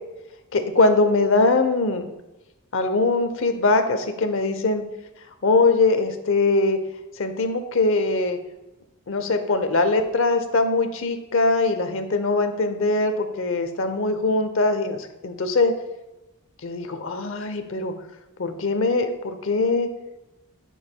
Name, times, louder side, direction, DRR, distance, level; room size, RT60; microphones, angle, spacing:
voice 1, 0.5-2.1 2.7-4.8 5.4-6.8 7.1-8.4 9.1-15.7 16.6-17.9 18.4-19.9, left 3 dB, 60° left, 7 dB, 0.8 m, -22 dB
11.5 x 6.4 x 2.3 m, 0.99 s
head